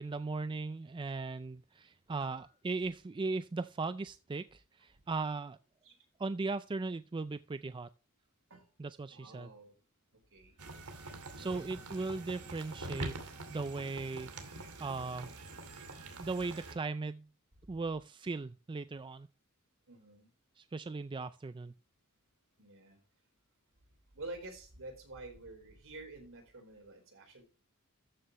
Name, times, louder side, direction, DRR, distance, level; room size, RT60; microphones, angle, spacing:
voice 1, 0.0-5.6 6.2-7.9 8.8-9.5 11.4-13.2 13.5-14.3 14.8-15.3 16.2-17.3 17.7-19.3 20.6-21.7, right 3 dB, 20° right, 0.4 m, -38 dB
voice 2, 2.2-2.5 5.8-5.9 8.5-8.7 9.1-9.7 10.3-10.5 11.4-11.6 19.9-20.3 22.6-23.0 24.1-27.4, right 2 dB, 65° right, 4.1 m, -49 dB
sound 1, 10.6-16.7, right 2 dB, 85° right, 2.6 m, -45 dB
13.5 x 6.7 x 3.0 m
head